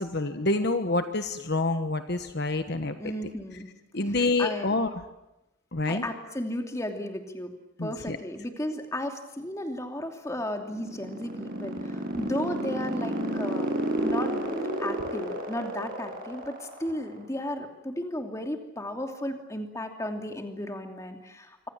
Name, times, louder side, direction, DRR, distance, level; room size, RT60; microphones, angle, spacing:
voice 1, 0.0-3.1 3.9-4.9 5.7-6.0 7.8-8.2, left 2 dB, 55° left, 8 dB, 1.4 m, -27 dB
voice 2, 3.0-3.7 4.4-4.7 5.9-7.5 7.8-13.7 14.0-21.7, left 1 dB, 15° left, 4 dB, 2.8 m, -34 dB
sound 1, 10.6-17.1, right 1 dB, 45° right, 7.3 m, -31 dB
26.5 x 25.0 x 7.5 m, 0.92 s
head